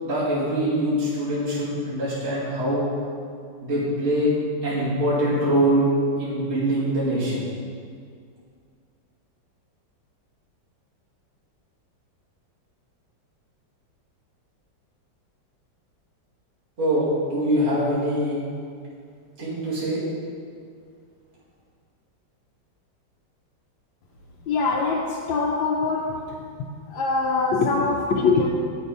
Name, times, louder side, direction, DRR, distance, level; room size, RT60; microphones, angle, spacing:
voice 1, 0.0-2.9 3.6-4.3 4.6-5.8 6.2-7.5 16.8-18.3 19.4-20.0, right 1 dB, 35° right, -10 dB, 2.5 m, -23 dB
voice 2, 24.5-26.4 26.9-28.5, left 4 dB, 90° left, -2 dB, 1.5 m, -23 dB
8.5 x 6.2 x 5.3 m, 2.2 s
omnidirectional pair, 2.0 m